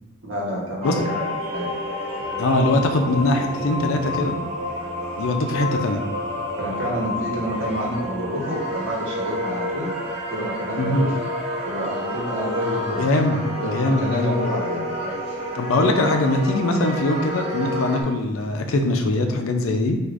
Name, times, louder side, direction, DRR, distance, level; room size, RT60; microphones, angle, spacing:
voice 1, 0.2-1.7 6.5-9.9 10.3-11.3 11.6-13.1 13.5-15.2, equal, 65° right, -3 dB, 1.0 m, -29 dB
sound 1, 0.8-18.0, left 1 dB, 30° right, 0.9 m, -29 dB
voice 2, 2.4-4.4 5.2-6.0 10.8-11.0 13.0-14.5 15.5-20.0, left 2 dB, 80° left, 5 dB, 0.5 m, -22 dB
4.6 x 2.5 x 2.5 m, 1.2 s
head